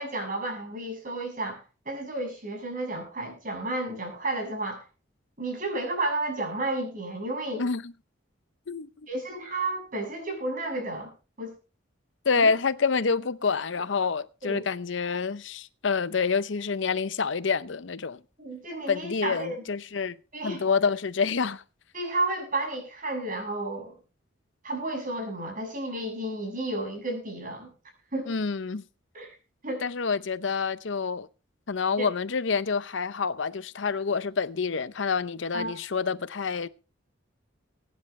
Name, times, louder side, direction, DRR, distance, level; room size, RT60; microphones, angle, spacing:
voice 1, 0.0-4.8 5.4-7.6 9.1-11.1 11.4-11.6 12.4-12.5 14.4-14.6 18.4-19.6 20.3-20.7 21.9-24.0 24.6-27.7 28.1-28.3 29.1-29.3 29.6-29.9 32.0-32.1 35.5-35.7, right 2 dB, 45° right, 7.1 m, -32 dB
voice 2, 12.3-18.2 18.9-20.2 20.4-21.6 28.3-28.8 29.8-31.3 31.7-36.7, left 5 dB, 65° left, 0.7 m, -27 dB
23.5 x 10.0 x 3.2 m
head